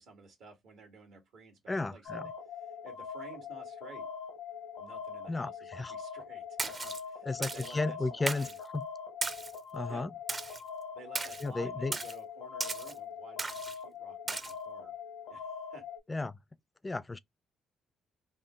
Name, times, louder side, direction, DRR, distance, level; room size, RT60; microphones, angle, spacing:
voice 1, 0.0-2.3 2.8-4.1 4.8-8.6 9.9-10.0 10.9-14.9 15.3-15.8, right 4 dB, 80° right, 1.6 m, -53 dB
voice 2, 1.7-2.3 5.3-5.9 7.2-8.5 8.7-8.8 9.7-10.1 11.4-12.0 16.1-16.4 16.8-17.2, left 3 dB, 20° left, 0.3 m, -34 dB
sound 1, 2.0-16.0, left 6 dB, 85° left, 0.8 m, -43 dB
Splash splatter, 6.6-7.0 7.4-7.7 8.3-8.6 9.2-9.6 10.3-10.6 11.2-11.4 11.9-12.2 12.6-12.9 13.4-13.8 14.3-14.5, right 3 dB, 35° right, 0.5 m, -36 dB
3.6 x 2.0 x 3.5 m
cardioid pair, 75°, 0 cm